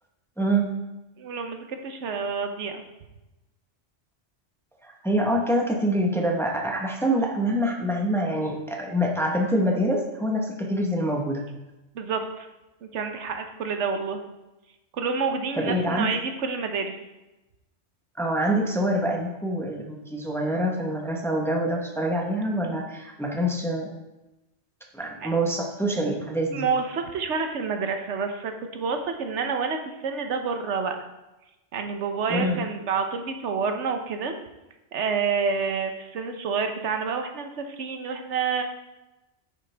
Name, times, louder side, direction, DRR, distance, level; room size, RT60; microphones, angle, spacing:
voice 1, 0.4-0.7 4.8-11.4 15.6-16.1 18.2-24.0 24.9-26.6 32.3-32.6, right 1 dB, ahead, 1 dB, 0.9 m, -25 dB
voice 2, 1.2-2.8 11.9-12.5 12.8-14.2 14.9-17.0 25.2-25.3 26.5-31.0 31.7-34.4 34.9-38.6, right 5 dB, 90° right, 6 dB, 1.1 m, -28 dB
9.0 x 6.7 x 3.4 m, 1.0 s
omnidirectional pair, 1.1 m